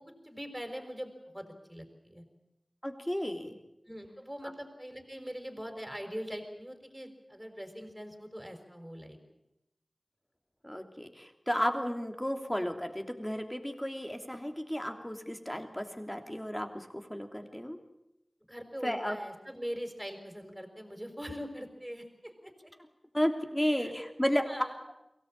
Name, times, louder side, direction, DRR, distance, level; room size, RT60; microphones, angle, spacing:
voice 1, 0.0-2.2 3.9-9.2 18.5-22.7 23.6-23.9 24.5-24.8, equal, 5° right, 5 dB, 5.5 m, -42 dB
voice 2, 2.8-3.6 10.6-17.8 18.8-19.2 23.1-24.4, equal, 15° left, 5 dB, 3.1 m, -33 dB
23.0 x 18.0 x 8.9 m, 0.89 s
wide cardioid pair, 45°, 0 cm